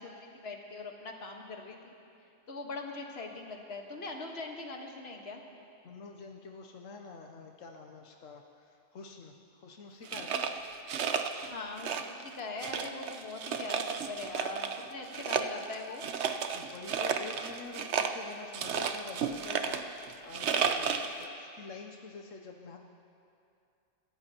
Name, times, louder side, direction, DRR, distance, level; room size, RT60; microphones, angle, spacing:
voice 1, 0.0-1.9 2.5-5.4 11.4-16.0 20.8-21.0, left 3 dB, 55° left, 1 dB, 1.6 m, -42 dB
voice 2, 5.8-10.4 16.5-22.8, left 4 dB, 85° left, 2 dB, 1.2 m, -47 dB
sound 1, 10.1-11.5 11.8-12.3 12.6-14.8 15.1-21.2, right 7 dB, 65° right, 1.0 m, -32 dB
26.0 x 14.0 x 2.9 m, 2.6 s
omnidirectional pair, 1.3 m